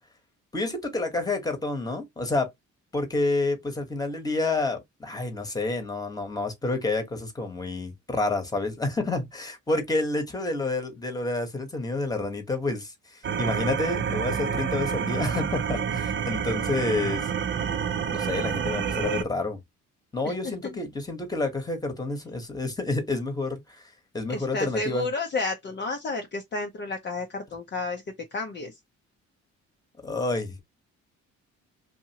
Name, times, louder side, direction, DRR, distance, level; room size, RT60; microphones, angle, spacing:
voice 1, 0.5-2.5 2.9-17.3 18.1-19.6 20.1-23.8 24.1-25.1 30.0-30.6, left 2 dB, 10° left, 1.1 m, -29 dB
sound 1, 13.2-19.2, right 7 dB, 40° right, 0.5 m, -28 dB
voice 2, 24.3-28.0 28.3-28.7, left 3 dB, 35° left, 0.6 m, -31 dB
2.7 x 2.6 x 2.7 m
cardioid pair, 90°, 30 cm